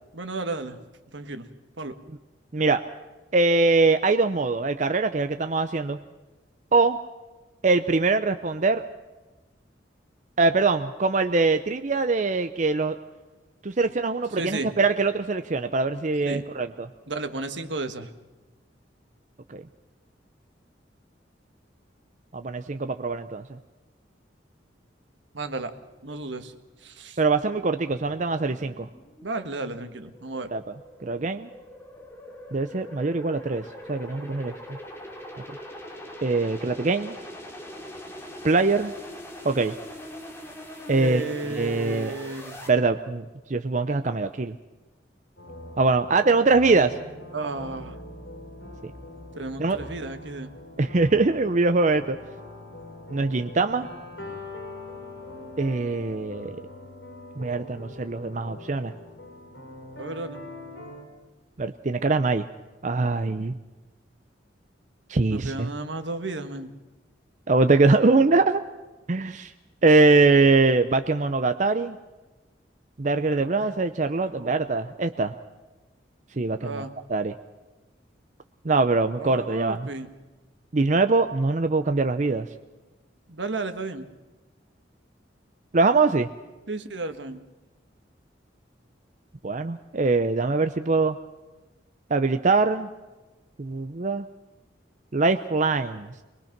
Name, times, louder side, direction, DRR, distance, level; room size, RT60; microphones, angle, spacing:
voice 1, 0.1-0.8 1.1-1.5 1.8-1.9 14.4-14.7 16.2-16.4 17.1-18.1 25.3-25.7 26.0-26.5 26.8-27.2 29.2-30.5 41.0-42.6 47.3-48.0 49.3-50.5 60.0-60.4 65.3-66.7 73.3-73.7 74.2-74.6 76.6-76.9 79.2-80.1 83.3-84.1 86.7-87.4, right 2 dB, 80° right, 8 dB, 1.5 m, -33 dB
voice 2, 3.3-6.0 6.7-7.0 7.6-8.8 10.4-13.0 13.6-16.9 19.5-19.6 22.3-23.4 27.2-28.9 30.5-30.6 31.0-31.5 32.5-33.6 33.9-34.8 36.2-37.2 38.4-38.9 39.4-39.7 40.9-41.2 41.5-42.1 42.7-43.2 43.5-44.6 45.8-46.9 48.8-48.9 49.6-49.8 50.8-52.2 53.1-53.9 55.6-56.6 57.4-58.9 61.6-62.4 62.8-63.6 65.1-65.7 67.5-68.6 69.1-69.5 69.8-72.0 73.0-75.3 76.4-76.8 77.1-77.3 78.6-79.9 80.7-82.5 85.7-86.3 89.4-91.2 92.1-92.9 93.6-94.3 95.1-96.1, right 3 dB, 40° right, 9 dB, 0.6 m, -22 dB
sound 1, 27.9-42.7, left 1 dB, 15° left, 2.8 m, -42 dB
sound 2, 45.4-61.0, left 1 dB, 70° left, 6.5 m, -42 dB
23.0 x 21.0 x 5.9 m, 1.2 s
head